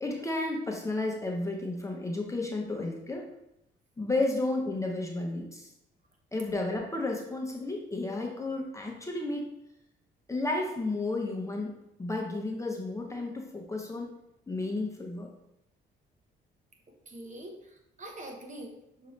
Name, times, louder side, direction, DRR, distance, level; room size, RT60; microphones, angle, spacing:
voice 1, 0.0-3.2 4.0-5.7 6.3-9.4 10.3-11.7 12.0-14.1 14.5-15.3, left 2 dB, 15° left, 0 dB, 0.7 m, -32 dB
voice 2, 17.1-19.1, right 1 dB, 40° right, 2 dB, 0.9 m, -44 dB
6.0 x 2.8 x 3.1 m, 0.81 s
cardioid pair, 90°, 20 cm